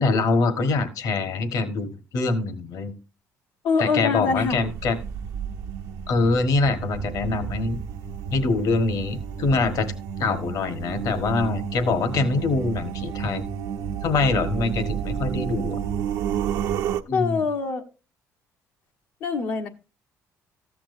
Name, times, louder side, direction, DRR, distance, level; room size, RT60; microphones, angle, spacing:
voice 1, 0.0-2.9 3.8-5.0 6.1-7.8 8.3-9.9 10.2-13.5 14.0-15.8 17.1-17.4, left 3 dB, 70° left, 10 dB, 1.4 m, -24 dB
voice 2, 3.6-4.6 17.1-17.8 19.2-19.7, left 5 dB, 90° left, 1 dB, 1.3 m, -24 dB
sound 1, 4.4-17.0, right 8 dB, 85° right, 0.7 m, -31 dB
14.0 x 8.7 x 2.6 m, 0.32 s
cardioid pair, 95°, 6 cm